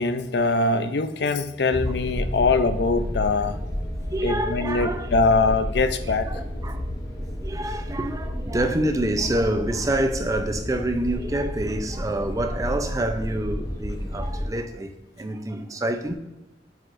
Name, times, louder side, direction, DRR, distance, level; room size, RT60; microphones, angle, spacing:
voice 1, 0.0-3.6 4.2-6.3, left 3 dB, 65° left, 0.5 m, -22 dB
sound 1, 1.7-14.5, equal, 20° left, 0.6 m, -31 dB
voice 2, 4.1-5.1 5.4-5.5 6.1-6.9 7.4-16.1, right 1 dB, 20° right, 0.4 m, -27 dB
7.8 x 4.7 x 2.5 m
head